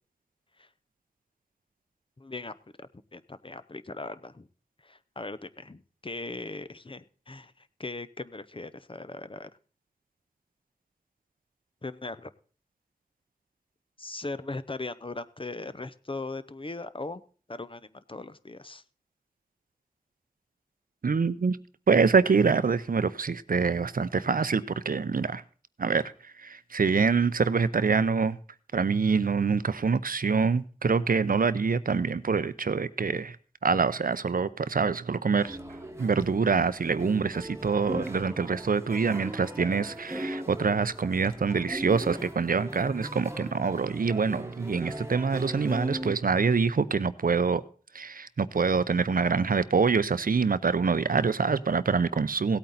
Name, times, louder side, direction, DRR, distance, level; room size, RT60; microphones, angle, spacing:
voice 1, 2.2-4.5 4.8-9.5 11.8-12.3 14.0-17.2 17.5-18.8, left 3 dB, 35° left, 0.6 m, -39 dB
voice 2, 21.0-21.6 21.9-25.4 25.8-28.4 28.7-33.4 33.6-35.6 36.0-47.6 47.9-52.6, right 5 dB, 75° right, 0.6 m, -25 dB
sound 1, 35.4-46.1, right 1 dB, 20° right, 1.2 m, -39 dB
16.5 x 8.7 x 4.0 m
wide cardioid pair, 50°, 15 cm